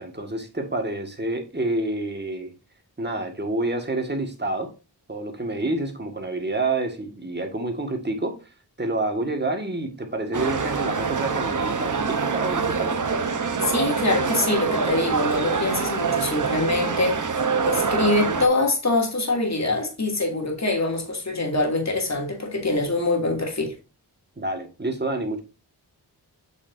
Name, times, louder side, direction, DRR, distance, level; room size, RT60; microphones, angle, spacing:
voice 1, 0.0-2.5 3.0-4.7 5.1-8.5 8.8-13.0 24.4-25.4, right 2 dB, 25° right, 1.9 m, -28 dB
sound 1, 10.3-18.5, right 5 dB, 45° right, 1.0 m, -25 dB
voice 2, 13.6-17.3 17.6-23.7, left 2 dB, 40° left, 2.7 m, -24 dB
8.2 x 6.3 x 2.7 m
wide cardioid pair, 95°, 41 cm